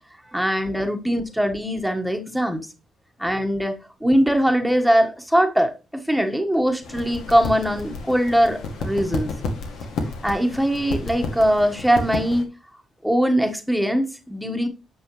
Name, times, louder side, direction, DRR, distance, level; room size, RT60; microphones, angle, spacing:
voice 1, 0.3-2.6 3.2-9.3 10.2-12.5 13.0-14.7, equal, ahead, 1.4 m, -21 dB
sound 1, 6.8-12.4, left 3 dB, 80° left, 2.2 m, -31 dB
9.7 x 6.2 x 3.2 m
cardioid pair, 90°, 0 cm